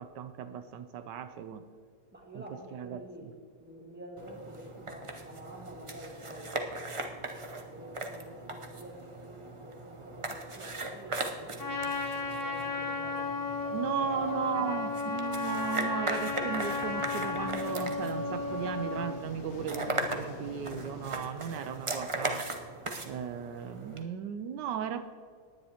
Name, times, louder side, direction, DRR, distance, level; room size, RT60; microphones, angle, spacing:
voice 1, 0.0-1.6 2.3-2.4 2.7-3.0 13.7-22.5 23.0-25.1, right 8 dB, 80° right, 10 dB, 1.2 m, -36 dB
voice 2, 2.1-7.3 7.7-14.9 15.6-16.9, right 1 dB, 5° right, 0 dB, 1.4 m, -48 dB
sound 1, 4.2-24.0, right 2 dB, 45° right, 0.4 m, -39 dB
Trumpet, 11.6-19.2, left 3 dB, 20° left, 0.6 m, -34 dB
sound 2, 16.3-21.3, left 5 dB, 70° left, 0.6 m, -46 dB
18.5 x 9.9 x 2.9 m, 2.2 s
omnidirectional pair, 1.9 m